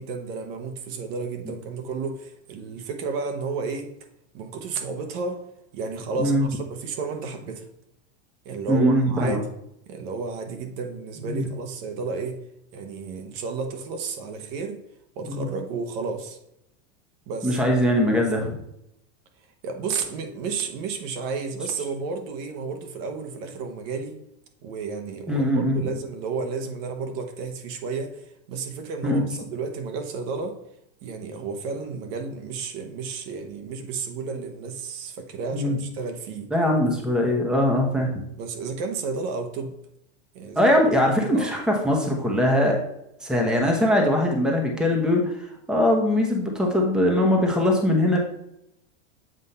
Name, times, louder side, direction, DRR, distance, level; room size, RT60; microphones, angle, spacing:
voice 1, 0.0-3.9 4.3-5.4 5.7-7.7 8.4-9.5 9.9-12.4 12.7-14.8 15.2-16.4 17.3-17.6 19.6-24.2 24.6-30.6 31.0-36.5 38.4-39.7 40.3-40.6 41.3-41.5, right 4 dB, 60° right, 5 dB, 1.1 m, -32 dB
voice 2, 6.2-6.5 8.7-9.4 11.2-11.4 15.3-15.5 17.4-18.6 25.3-25.9 29.0-29.2 35.5-35.8 36.5-38.1 40.5-42.8 43.2-48.2, left 1 dB, ahead, 0 dB, 1.0 m, -21 dB
7.7 x 2.7 x 5.5 m, 0.80 s
supercardioid pair, 135°, 33 cm